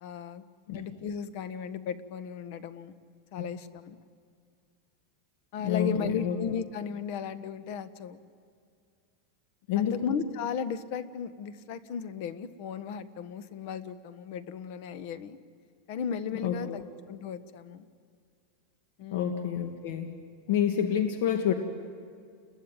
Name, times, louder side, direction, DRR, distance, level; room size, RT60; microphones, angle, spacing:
voice 1, 0.0-0.4 0.7-2.9 3.3-4.0 5.5-8.2 9.8-15.4 15.9-17.8 19.0-19.3, left 7 dB, 50° left, 12 dB, 1.4 m, -35 dB
voice 2, 5.6-6.4 9.7-10.2 16.4-16.8 19.1-20.1 20.5-21.5, left 8 dB, 65° left, 5 dB, 2.0 m, -28 dB
29.5 x 21.5 x 9.1 m, 2.2 s
supercardioid pair, 160°, 0 cm